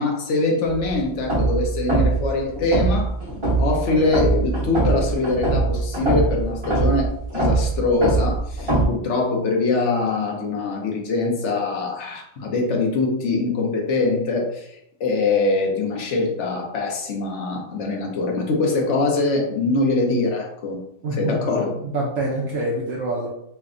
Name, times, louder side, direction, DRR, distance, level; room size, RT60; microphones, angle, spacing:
voice 1, 0.0-3.1 3.6-20.8 21.1-21.7, left 3 dB, 75° left, 1 dB, 1.1 m, -23 dB
sound 1, 0.7-8.9, right 2 dB, 25° right, 1.3 m, -22 dB
voice 2, 21.0-21.5 21.8-23.3, right 1 dB, 65° right, -4 dB, 0.9 m, -26 dB
3.3 x 2.2 x 3.7 m, 0.73 s
omnidirectional pair, 1.2 m